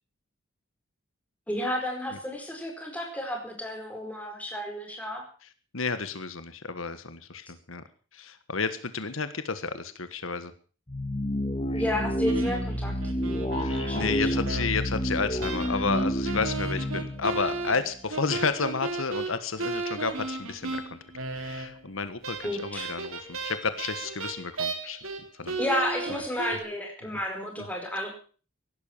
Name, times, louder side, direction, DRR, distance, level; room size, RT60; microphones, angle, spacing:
voice 1, 1.5-5.2 11.7-13.0 13.8-14.7 22.4-22.9 25.6-28.1, left 1 dB, 5° left, 2 dB, 4.6 m, -32 dB
voice 2, 5.7-7.8 8.1-10.5 13.6-21.0 21.3-25.0 25.3-25.6 27.6-27.7, left 4 dB, 80° left, 11 dB, 1.5 m, -31 dB
sound 1, 10.9-18.1, equal, 25° left, 2.0 m, -29 dB
sound 2, 12.3-14.9 15.4-21.9 22.2-25.2 25.5-26.6, right 3 dB, 90° right, 3.7 m, -35 dB
16.5 x 12.0 x 7.2 m, 0.41 s
head